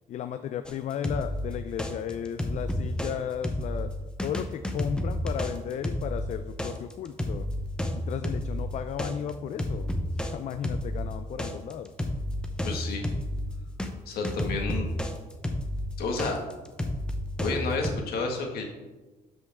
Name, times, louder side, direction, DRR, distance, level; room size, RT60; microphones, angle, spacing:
voice 1, 0.1-3.9 4.2-7.5 7.9-11.9 14.5-14.7, left 9 dB, 50° left, 10 dB, 0.4 m, -35 dB
sound 1, 0.7-3.1 3.4-13.9 14.2-17.9, left 1 dB, 5° left, 0.8 m, -31 dB
voice 2, 12.6-13.0 14.1-14.9 16.0-16.4 17.4-18.6, left 3 dB, 75° left, 2 dB, 1.7 m, -30 dB
12.0 x 5.3 x 3.6 m, 1.2 s
cardioid pair, 135°, 16 cm